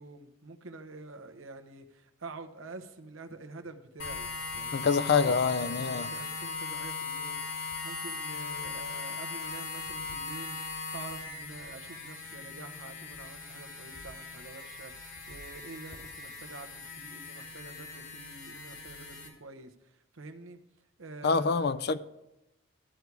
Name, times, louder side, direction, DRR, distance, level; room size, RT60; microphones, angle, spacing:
voice 1, 0.0-20.6 21.0-21.8, right 3 dB, 80° right, 1.0 m, -47 dB
sound 1, 4.0-19.3, left 4 dB, 70° left, 2.9 m, -39 dB
voice 2, 4.7-6.1 21.2-22.0, left 5 dB, 50° left, 0.4 m, -26 dB
12.5 x 4.7 x 8.1 m
head